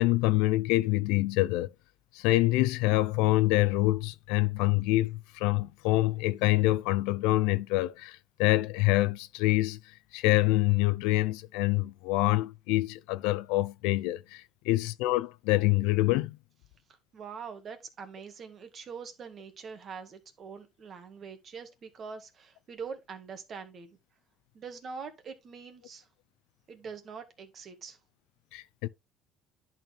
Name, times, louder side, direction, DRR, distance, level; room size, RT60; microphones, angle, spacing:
voice 1, 0.0-1.7 2.1-9.8 10.1-16.4 28.5-28.9, left 18 dB, 90° left, 0.5 m, -26 dB
voice 2, 17.1-24.0 24.5-26.1 26.7-28.0, right 5 dB, 45° right, 1.9 m, -43 dB
10.5 x 4.3 x 3.5 m
cardioid pair, 110°, 0 cm